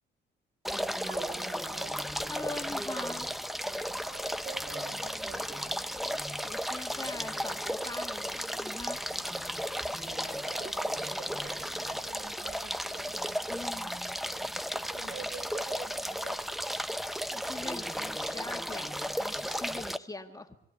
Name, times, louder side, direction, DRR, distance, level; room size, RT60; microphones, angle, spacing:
sound 1, 0.6-20.0, equal, ahead, 0.8 m, -34 dB
voice 1, 1.1-2.1 4.0-6.0 9.7-13.2 14.9-16.7, right 6 dB, 65° right, 8 dB, 4.5 m, -47 dB
voice 2, 2.3-3.3 6.4-9.0 13.5-13.9 17.3-20.6, left 2 dB, 20° left, 5 dB, 2.1 m, -42 dB
23.0 x 16.5 x 9.5 m, 0.74 s
cardioid pair, 90°, 20 cm